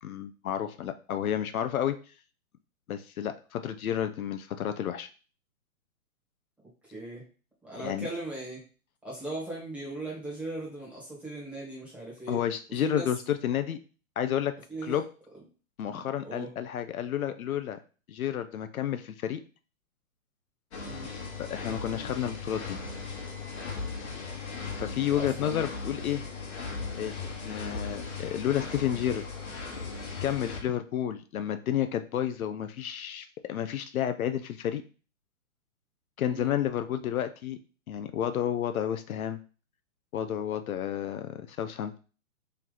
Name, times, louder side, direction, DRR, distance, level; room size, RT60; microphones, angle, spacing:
voice 1, 0.0-2.0 2.9-5.1 7.8-8.1 12.3-13.8 14.2-14.5 14.8-15.1 15.8-17.8 18.1-19.4 21.4-22.8 24.8-26.2 27.0-29.2 30.2-34.8 36.2-37.6 37.9-39.4 40.1-42.0, left 10 dB, 75° left, 10 dB, 0.6 m, -31 dB
voice 2, 6.9-7.2 7.6-8.6 9.0-12.4 12.8-13.1 14.7-15.0 15.8-16.5 20.8-21.1 25.2-25.6 36.3-36.6, right 2 dB, 5° right, -5 dB, 1.1 m, -38 dB
sound 1, 20.7-30.6, left 4 dB, 50° left, 1.2 m, -37 dB
3.3 x 2.8 x 3.7 m, 0.36 s
hypercardioid pair, 140°, 43 cm